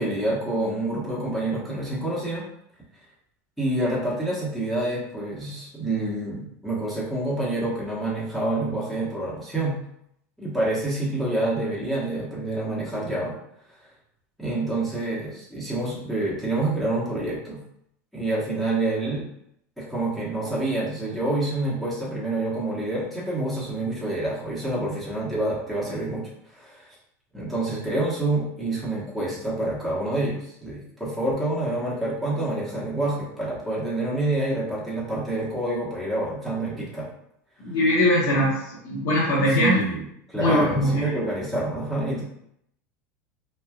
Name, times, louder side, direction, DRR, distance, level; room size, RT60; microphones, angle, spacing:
voice 1, 0.0-2.4 3.6-9.8 10.4-13.4 14.4-17.6 18.1-19.2 19.8-26.2 26.5-26.8 27.3-37.1 39.5-40.0 40.3-42.2, right 2 dB, ahead, -8 dB, 1.1 m, -27 dB
voice 2, 37.6-38.6 38.8-39.8 40.4-41.0, equal, 55° left, -9 dB, 1.0 m, -21 dB
3.2 x 2.3 x 2.3 m, 0.74 s
hypercardioid pair, 100°, 8 cm